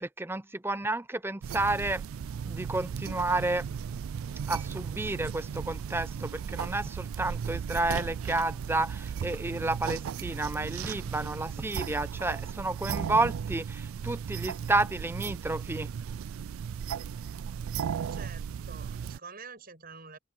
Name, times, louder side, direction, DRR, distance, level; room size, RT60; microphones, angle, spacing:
voice 1, 0.0-2.0 2.4-3.6 4.5-15.9, right 2 dB, 10° right, 0.6 m, -31 dB
sound 1, 1.4-19.2, right 7 dB, 80° right, 0.3 m, -36 dB
voice 2, 18.1-20.2, right 5 dB, 45° right, 7.6 m, -47 dB
head